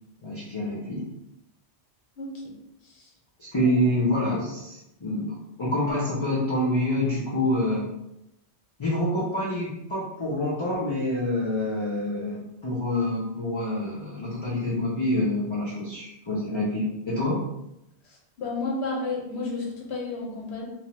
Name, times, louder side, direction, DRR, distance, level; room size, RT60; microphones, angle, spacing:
voice 1, 0.2-1.0 3.4-7.9 8.8-17.4, left 1 dB, 40° left, -6 dB, 0.4 m, -27 dB
voice 2, 2.2-2.5 2.8-3.1 3.6-3.7 18.0-20.7, left 3 dB, 70° left, -2 dB, 1.0 m, -32 dB
3.0 x 2.1 x 2.9 m, 0.88 s
omnidirectional pair, 1.2 m